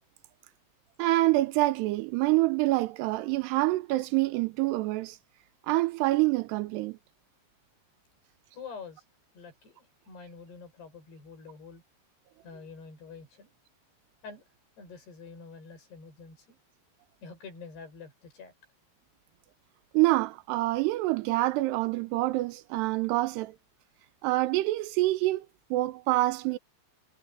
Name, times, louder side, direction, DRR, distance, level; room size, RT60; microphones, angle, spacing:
voice 1, 1.0-5.2 5.7-7.0 19.9-23.5 24.2-26.6, right 19 dB, 85° right, 2.7 m, -26 dB
voice 2, 8.5-9.0 9.3-11.8 12.4-13.5 14.2-14.5 14.8-16.6 17.2-18.5, left 5 dB, 70° left, 10.0 m, -46 dB
omnidirectional pair, 5.0 m